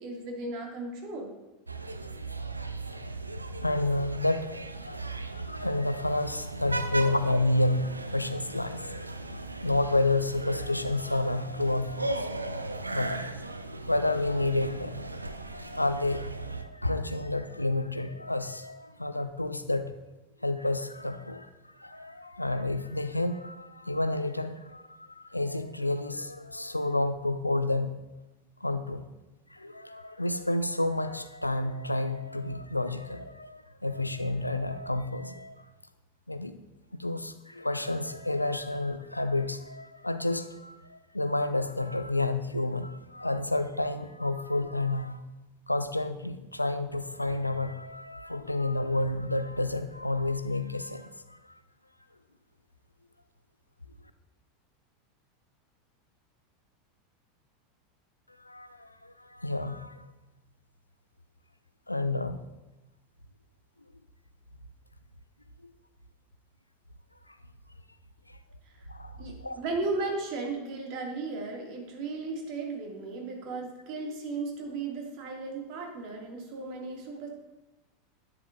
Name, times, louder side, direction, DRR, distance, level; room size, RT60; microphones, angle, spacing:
voice 1, 0.0-1.3 7.0-7.1 68.7-68.9 69.2-77.3, right 3 dB, 45° right, 0 dB, 2.1 m, -35 dB
sound 1, 1.7-16.6, right 2 dB, 85° right, 0.5 m, -37 dB
voice 2, 3.6-4.5 4.8-12.3 12.9-13.2 13.9-19.9 20.4-21.5 21.8-28.0 28.6-29.0 29.5-35.7 36.3-36.6 37.0-45.2 45.7-51.4 58.4-60.0 61.9-62.4 65.6-65.7 68.9-69.6, left 2 dB, 85° left, 11 dB, 0.5 m, -30 dB
10.5 x 9.5 x 2.5 m, 1.1 s
figure-of-eight pair, 85°, 0 cm